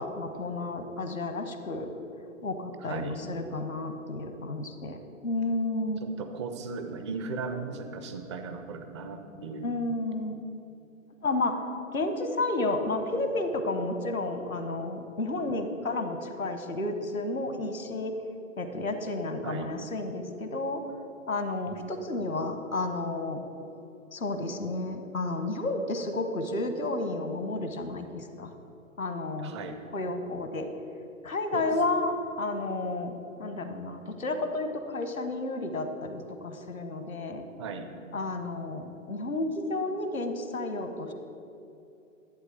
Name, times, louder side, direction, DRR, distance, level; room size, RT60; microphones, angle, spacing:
voice 1, 0.0-1.9 2.4-5.0 5.2-6.0 9.6-10.3 11.2-11.6 11.9-18.1 18.6-20.8 21.3-23.4 24.1-28.5 29.0-29.5 29.9-30.7 31.2-33.1 33.4-37.5 38.1-41.1, left 2 dB, 85° left, 7 dB, 1.1 m, -31 dB
voice 2, 2.8-3.2 6.0-9.7 19.4-19.7 21.7-21.9 29.4-29.8 31.5-31.7 37.6-37.9, right 4 dB, 20° right, 7 dB, 0.5 m, -37 dB
11.0 x 8.0 x 4.5 m, 2.7 s
figure-of-eight pair, 115°, 40 cm